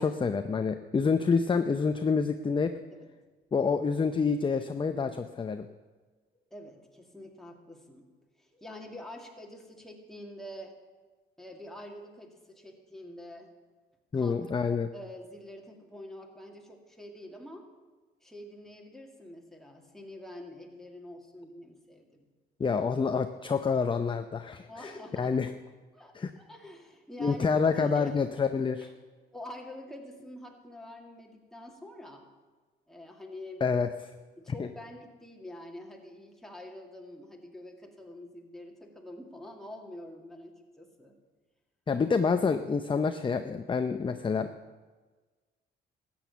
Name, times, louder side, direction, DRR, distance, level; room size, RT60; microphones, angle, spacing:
voice 1, 0.0-2.7 3.5-5.7 14.1-14.9 22.6-24.9 25.2-25.5 26.2-26.3 27.2-28.9 33.6-33.9 34.6-34.7 41.9-44.5, left 5 dB, 25° left, 8 dB, 0.6 m, -27 dB
voice 2, 6.3-8.1 8.4-10.8 11.4-13.5 14.1-14.5 14.9-17.7 18.2-22.3 24.7-25.5 25.9-28.2 28.8-28.9 29.3-32.3 32.9-33.7 34.4-41.2, left 1 dB, ahead, 0 dB, 2.3 m, -46 dB
13.5 x 8.8 x 7.0 m, 1.3 s
cardioid pair, 90°, 20 cm